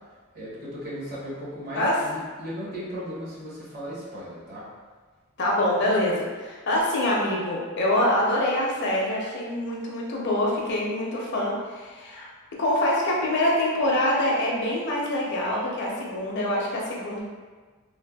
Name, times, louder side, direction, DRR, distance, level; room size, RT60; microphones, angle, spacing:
voice 1, 0.3-4.7, equal, 45° right, -8 dB, 0.9 m, -36 dB
voice 2, 5.4-12.3 12.6-17.3, left 1 dB, 55° left, -3 dB, 0.5 m, -25 dB
3.3 x 2.1 x 2.2 m, 1.4 s
head